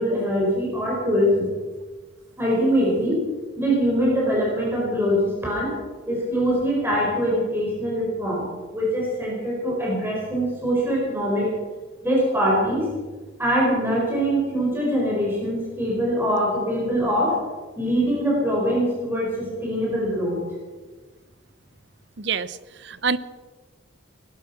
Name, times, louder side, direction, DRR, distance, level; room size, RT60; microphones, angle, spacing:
voice 1, 0.0-1.5 2.4-3.2 3.6-5.7 6.1-8.5 8.7-11.5 12.0-12.8 13.4-17.4 17.8-20.4, equal, 10° right, -5 dB, 4.9 m, -23 dB
voice 2, 22.2-23.2, right 5 dB, 60° right, 16 dB, 0.7 m, -27 dB
20.0 x 11.5 x 6.0 m, 1.3 s
head